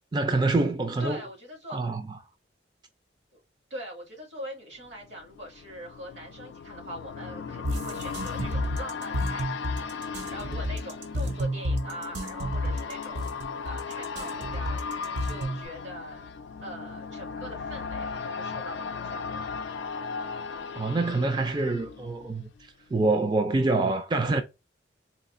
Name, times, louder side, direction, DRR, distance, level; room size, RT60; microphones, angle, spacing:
voice 1, 0.1-1.2 1.7-2.0 20.8-24.4, right 3 dB, 25° right, 0.3 m, -26 dB
voice 2, 1.0-1.9 3.3-3.4 3.7-13.3 13.6-14.8 15.2-16.3 16.6-19.2, equal, 80° right, 2.1 m, -42 dB
sound 1, 4.9-22.7 23.0-23.1, left 5 dB, 80° left, 0.4 m, -37 dB
sound 2, 7.6-15.7, equal, 65° right, 0.7 m, -30 dB
4.1 x 2.4 x 2.5 m
head